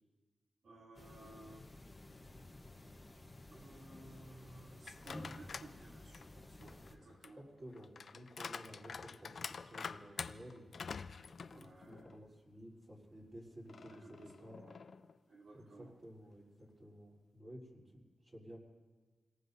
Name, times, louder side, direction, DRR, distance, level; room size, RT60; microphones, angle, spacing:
voice 1, 0.6-1.7 3.5-7.4 11.5-12.1 13.9-14.8 15.3-16.0, right 2 dB, 75° right, -2 dB, 2.9 m, -57 dB
sound 1, 0.9-6.9, left 2 dB, 20° left, 1.1 m, -53 dB
sound 2, 4.8-5.7 6.1-12.2 12.6-12.7 13.7-15.2, left 5 dB, 60° left, 0.5 m, -48 dB
voice 2, 7.4-11.0 11.4-14.6 15.5-18.6, equal, 25° right, -3 dB, 3.8 m, -54 dB
27.5 x 18.5 x 2.7 m, 1.4 s
wide cardioid pair, 125°, 0 cm